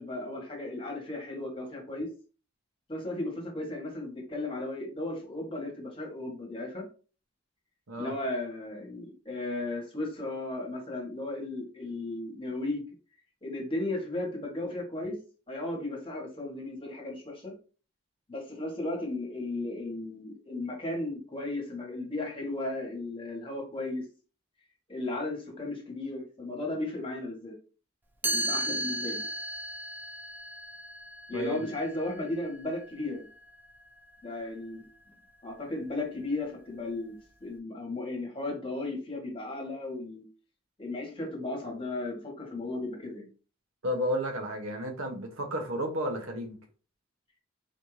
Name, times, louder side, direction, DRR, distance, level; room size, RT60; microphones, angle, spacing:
voice 1, 0.0-2.1 2.9-6.9 8.0-12.8 13.4-15.2 15.5-17.5 18.3-24.0 24.9-27.5 28.2-29.2 31.3-33.3 34.2-34.8 35.4-37.2 37.4-40.2 40.8-43.3, left 2 dB, 25° left, 1.3 m, -35 dB
Chime, 28.2-34.1, right 1 dB, 10° right, 0.3 m, -36 dB
voice 2, 31.3-31.7 43.8-46.6, equal, 90° right, 1.0 m, -32 dB
4.2 x 2.7 x 3.2 m
head